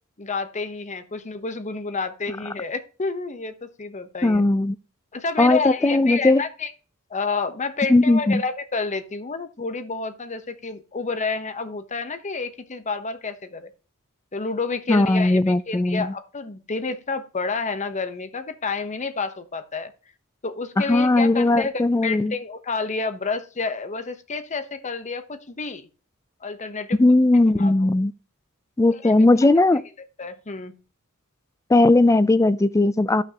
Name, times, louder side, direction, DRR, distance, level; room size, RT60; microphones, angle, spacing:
voice 1, 0.2-4.4 5.1-6.7 7.1-13.7 14.3-19.9 20.4-25.9 26.4-27.0 27.6-27.9 28.9-29.1 30.2-30.7, left 4 dB, 35° left, 0.9 m, -29 dB
voice 2, 4.2-4.8 5.4-6.4 7.9-8.4 14.9-16.1 20.9-22.3 27.0-28.1 28.8-29.8 31.7-33.2, left 2 dB, 15° left, 0.3 m, -18 dB
13.0 x 5.8 x 2.9 m
head